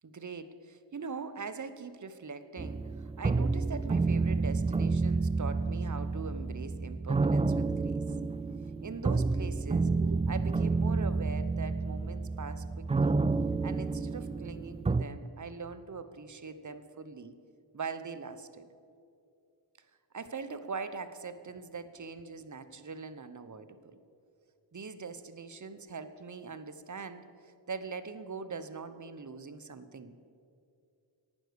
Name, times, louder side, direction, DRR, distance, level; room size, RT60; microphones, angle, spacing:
voice 1, 0.0-8.2 8.8-13.2 13.6-17.3 17.7-18.7 20.1-24.0 24.7-30.3, right 5 dB, 40° right, 12 dB, 1.0 m, -42 dB
sound 1, 2.6-15.0, right 3 dB, 15° right, 0.3 m, -30 dB
11.5 x 9.1 x 6.9 m, 2.5 s
cardioid pair, 45°, 48 cm